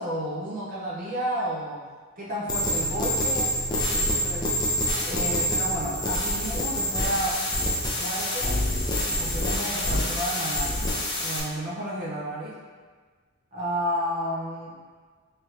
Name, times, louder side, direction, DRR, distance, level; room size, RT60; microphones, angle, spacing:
voice 1, 0.0-1.8 2.2-3.5 3.9-4.5 5.0-7.4 8.0-8.6 9.1-10.9 11.2-12.6 13.5-14.7, equal, 40° right, -6 dB, 0.5 m, -31 dB
sound 1, 2.5-11.4, left 1 dB, 20° left, 0.3 m, -26 dB
3.1 x 2.5 x 3.0 m, 1.5 s
head